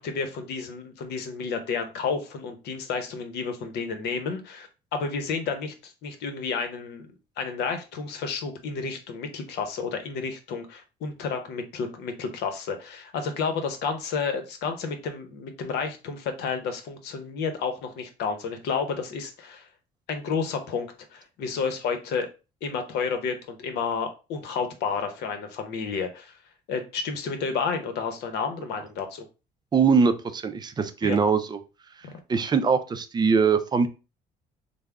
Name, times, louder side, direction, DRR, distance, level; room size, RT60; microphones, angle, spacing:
voice 1, 0.0-7.1 7.4-19.6 20.1-22.3 22.6-26.3 26.7-29.2 31.0-31.2 32.0-32.1, left 5 dB, 75° left, 7 dB, 0.8 m, -31 dB
voice 2, 29.7-31.6 32.3-33.9, right 5 dB, 25° right, 9 dB, 0.4 m, -22 dB
3.4 x 2.0 x 3.4 m, 0.31 s
cardioid pair, 110°, 17 cm